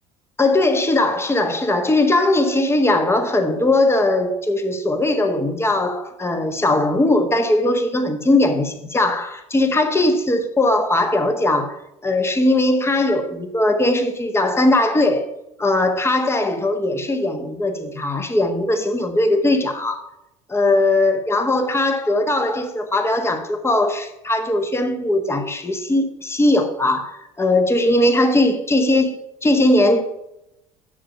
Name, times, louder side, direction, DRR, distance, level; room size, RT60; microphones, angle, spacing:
voice 1, 0.4-11.8 12.0-15.3 15.6-20.0 20.5-30.0, left 2 dB, 15° left, 1.4 m, -19 dB
7.5 x 6.9 x 5.6 m
hypercardioid pair, 75°, 17 cm